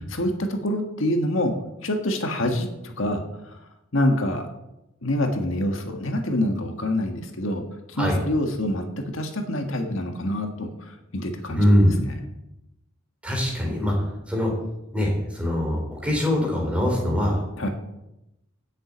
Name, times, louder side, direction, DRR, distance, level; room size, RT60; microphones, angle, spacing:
voice 1, 0.1-1.5 1.8-3.6 3.9-4.5 5.0-12.2 17.6-17.7, left 1 dB, 65° left, 4 dB, 1.7 m, -26 dB
voice 2, 11.6-12.0 13.2-13.9 14.3-14.5 14.9-17.4, left 1 dB, 5° right, 0 dB, 3.6 m, -22 dB
11.0 x 7.7 x 8.5 m, 0.89 s
head